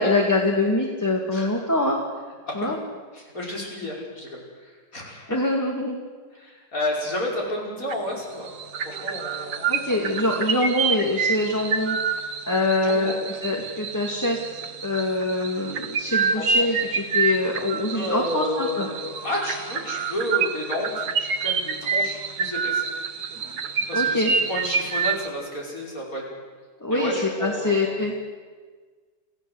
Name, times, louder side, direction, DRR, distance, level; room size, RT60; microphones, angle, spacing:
voice 1, 0.0-2.0 2.5-2.8 5.3-6.0 9.7-12.0 12.5-13.1 13.4-14.4 14.8-18.9 23.9-24.3 26.8-27.1 27.4-28.1, left 2 dB, 10° left, 0 dB, 2.2 m, -24 dB
voice 2, 3.1-5.4 6.3-8.5 8.8-9.9 12.8-13.2 16.3-16.8 17.9-22.8 23.9-26.3 26.9-28.0, left 1 dB, 55° left, -2 dB, 5.9 m, -31 dB
sound 1, 7.9-8.2 8.5-25.3, right 5 dB, 75° right, 1.7 m, -27 dB
27.5 x 15.5 x 8.0 m, 1.5 s
omnidirectional pair, 1.8 m